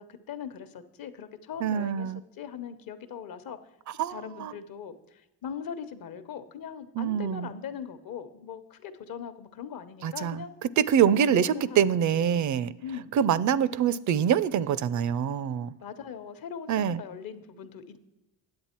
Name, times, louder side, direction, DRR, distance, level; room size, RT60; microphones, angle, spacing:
voice 1, 0.0-3.6 4.1-10.6 11.1-12.4 12.8-13.1 15.8-18.0, left 7 dB, 55° left, 10 dB, 1.0 m, -40 dB
voice 2, 1.6-2.2 4.0-4.5 7.0-7.5 10.0-10.4 10.8-12.7 13.1-15.7 16.7-17.0, right 9 dB, 50° right, 19 dB, 0.5 m, -25 dB
9.5 x 7.9 x 4.4 m, 1.0 s
cardioid pair, 80°, 40 cm